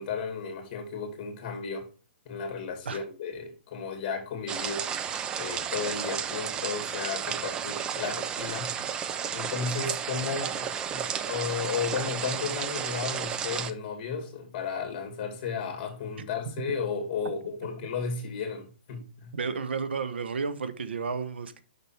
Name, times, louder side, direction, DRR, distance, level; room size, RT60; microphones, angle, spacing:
voice 1, 0.0-1.9 2.2-4.8 5.4-8.7 9.3-19.3, left 5 dB, 35° left, 2.4 m, -34 dB
sound 1, 4.5-13.7, right 8 dB, 15° right, 0.4 m, -32 dB
voice 2, 19.3-21.6, right 5 dB, 85° right, 1.0 m, -32 dB
6.9 x 5.9 x 4.4 m
hypercardioid pair, 155°, 6 cm